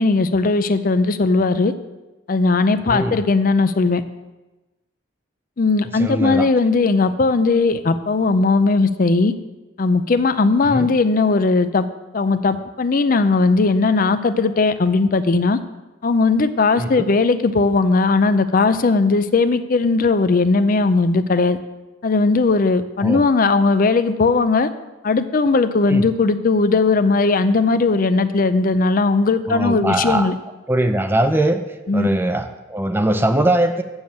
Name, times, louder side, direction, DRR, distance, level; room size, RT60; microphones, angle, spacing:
voice 1, 0.0-1.7 2.3-4.0 5.6-9.3 9.8-11.9 12.1-15.6 16.0-21.6 22.0-24.7 25.0-30.3 31.9-32.1, left 3 dB, 45° left, 11 dB, 0.5 m, -18 dB
voice 2, 2.9-3.2 6.0-6.5 10.7-10.9 16.8-17.1 23.0-23.2 25.9-26.1 29.5-30.3 30.7-31.6 31.9-33.8, right 1 dB, 10° right, 8 dB, 0.4 m, -20 dB
7.1 x 7.0 x 7.7 m, 1.1 s
head